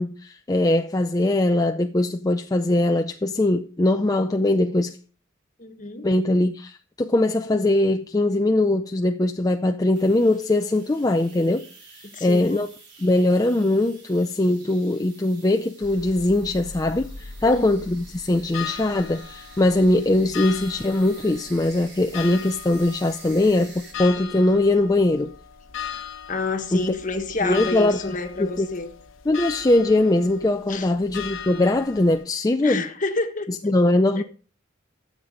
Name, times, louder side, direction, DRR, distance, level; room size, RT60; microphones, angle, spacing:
voice 1, 0.0-5.0 6.0-11.7 12.2-12.7 13.0-25.3 26.7-26.9 27.4-28.7 29.3-32.8 33.6-34.2, left 2 dB, 20° left, 0.4 m, -21 dB
voice 2, 5.6-6.1 12.1-12.6 17.4-17.7 26.3-28.9 30.7-30.9 32.6-33.5 34.2-34.3, left 3 dB, 40° left, 1.4 m, -29 dB
sound 1, 9.9-23.9, right 4 dB, 60° right, 4.0 m, -48 dB
sound 2, 15.8-32.2, left 7 dB, 90° left, 1.0 m, -39 dB
13.0 x 7.4 x 5.0 m
head